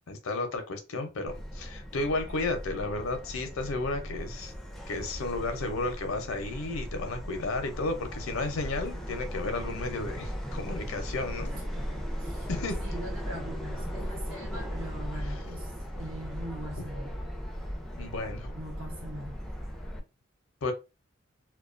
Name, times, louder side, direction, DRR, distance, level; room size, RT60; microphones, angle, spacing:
voice 1, 0.1-4.5 4.9-11.5 12.5-12.8 18.0-18.5 20.6-20.7, left 2 dB, 80° left, 0.6 m, -33 dB
Subway metro underground, 1.3-20.0, equal, ahead, 0.4 m, -37 dB
voice 2, 11.5-12.5 12.8-17.2 18.5-19.4, right 1 dB, 70° right, 0.9 m, -42 dB
2.2 x 2.2 x 2.5 m
head